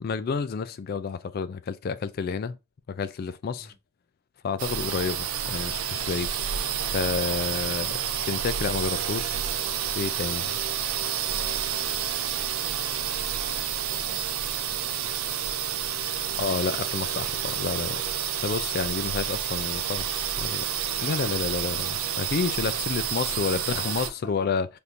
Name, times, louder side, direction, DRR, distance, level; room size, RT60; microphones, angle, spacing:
voice 1, 0.0-2.6 2.9-3.7 4.4-9.4 9.9-10.5 16.1-18.0 18.4-20.6 21.0-24.7, left 5 dB, 45° left, 0.3 m, -30 dB
sound 1, 4.6-24.1, right 9 dB, 70° right, 0.4 m, -29 dB
voice 2, 12.4-14.2 14.5-16.4 23.3-24.4, right 1 dB, 25° right, 1.1 m, -51 dB
3.5 x 2.5 x 2.7 m
head